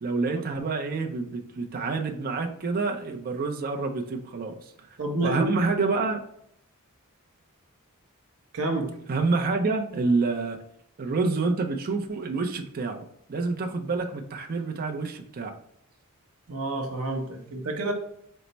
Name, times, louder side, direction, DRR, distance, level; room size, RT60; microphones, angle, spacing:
voice 1, 0.0-4.5 5.2-6.2 9.1-10.6 11.0-13.0 13.3-15.5, right 3 dB, 40° right, 4 dB, 0.5 m, -27 dB
voice 2, 5.0-5.6 8.5-8.9 16.5-17.9, right 2 dB, 70° right, 3 dB, 0.8 m, -29 dB
4.4 x 2.1 x 3.9 m, 0.71 s
head